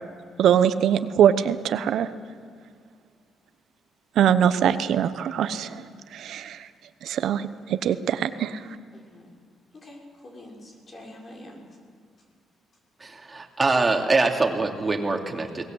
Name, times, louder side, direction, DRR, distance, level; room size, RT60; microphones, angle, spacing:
voice 1, 0.4-2.1 4.2-5.8 6.1-6.6 7.0-8.6, right 9 dB, 75° right, 12 dB, 0.9 m, -22 dB
voice 2, 8.9-9.3 9.7-11.6, left 1 dB, 40° left, 0 dB, 6.2 m, -45 dB
voice 3, 13.0-15.6, right 3 dB, 25° right, 2 dB, 2.7 m, -24 dB
23.0 x 19.0 x 8.0 m, 2.1 s
cardioid pair, 90°, 0 cm